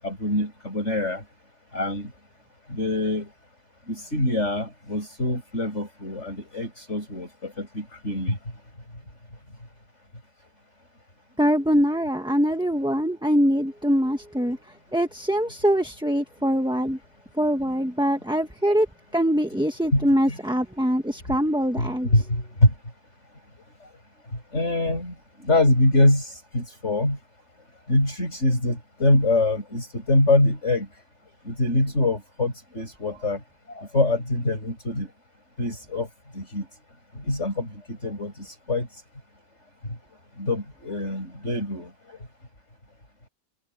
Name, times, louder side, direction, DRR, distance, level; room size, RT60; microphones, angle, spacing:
voice 1, 0.0-1.2 1.7-2.1 2.7-3.3 3.9-8.4 19.9-20.1 21.3-21.4 21.8-22.7 24.5-25.1 25.4-27.2 27.9-30.9 31.5-33.4 33.7-35.1 35.6-36.1 36.3-36.6 37.2-38.9 40.4-41.9, left 2 dB, 55° left, 8.3 m, -24 dB
voice 2, 11.4-14.6 14.9-17.0 17.4-18.9 19.1-22.1, equal, 5° right, 1.2 m, -23 dB
omnidirectional pair, 1.5 m